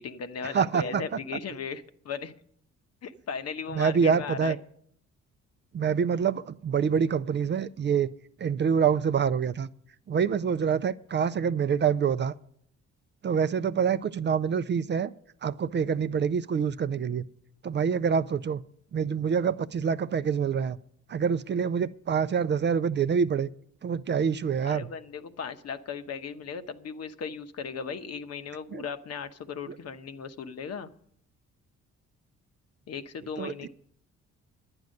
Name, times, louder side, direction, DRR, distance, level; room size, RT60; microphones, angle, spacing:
voice 1, 0.0-2.3 3.0-4.5 24.6-30.9 32.9-33.7, left 6 dB, 55° left, 9 dB, 1.0 m, -37 dB
voice 2, 0.5-1.0 3.7-4.6 5.7-8.1 8.4-9.7 10.1-12.3 13.2-15.1 15.4-17.3 17.6-18.6 18.9-20.8 21.1-23.5 23.8-24.9 28.7-28.8 29.7-29.8 33.4-33.7, right 7 dB, 35° right, 14 dB, 0.5 m, -26 dB
11.0 x 9.4 x 6.4 m, 0.66 s
cardioid pair, 90°, 30 cm